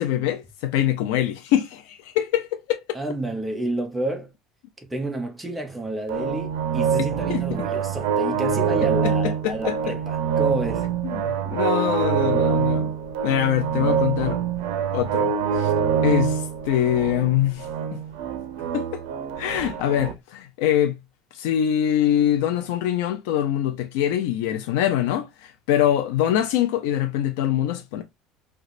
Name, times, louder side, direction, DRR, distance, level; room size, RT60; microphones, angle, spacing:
voice 1, 0.0-2.8 7.3-7.4 9.0-9.9 11.0-12.9 13.2-14.4 14.9-15.7 16.0-18.0 18.7-19.0 19.4-21.0 21.3-28.0, left 11 dB, 80° left, 0.4 m, -24 dB
voice 2, 2.9-4.3 4.9-10.9, right 2 dB, 5° right, 0.6 m, -30 dB
sound 1, 6.1-20.1, right 7 dB, 80° right, 0.5 m, -25 dB
3.2 x 2.8 x 2.5 m
cardioid pair, 165°, 0 cm